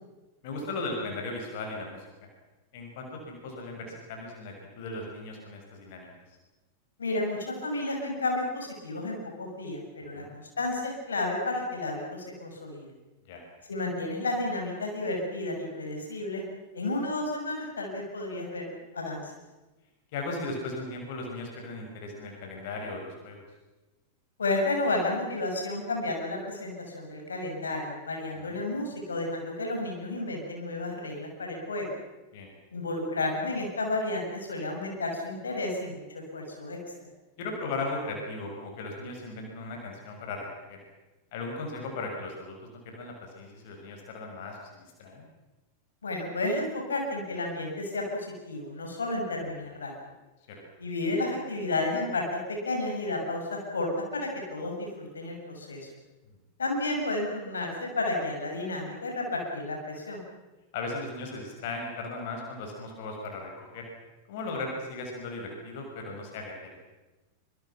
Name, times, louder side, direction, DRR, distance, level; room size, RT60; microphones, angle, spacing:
voice 1, 0.4-2.0 2.7-6.1 10.1-10.4 13.3-13.4 20.1-23.4 28.4-28.6 32.3-32.5 37.4-40.8 41.3-45.2 50.5-50.6 60.7-63.9 64.3-66.5, left 2 dB, 50° left, 1 dB, 6.2 m, -37 dB
voice 2, 7.0-12.9 13.7-16.4 16.7-19.3 24.4-31.9 32.7-36.8 46.0-48.2 48.4-49.9 50.8-55.8 56.6-60.2, left 2 dB, 70° left, 1 dB, 6.8 m, -32 dB
26.5 x 26.0 x 6.0 m, 1.1 s
figure-of-eight pair, 90°, 0 cm